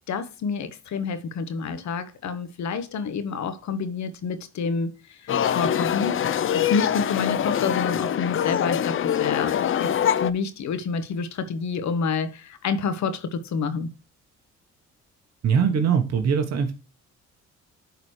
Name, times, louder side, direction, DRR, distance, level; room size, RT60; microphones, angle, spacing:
voice 1, 0.1-6.2 6.5-13.9, left 5 dB, 70° left, 1.2 m, -28 dB
sound 1, 5.3-10.3, left 9 dB, 45° left, 0.5 m, -24 dB
voice 2, 15.4-16.7, right 6 dB, 60° right, 1.2 m, -21 dB
11.5 x 4.1 x 3.1 m
cardioid pair, 80°, 30 cm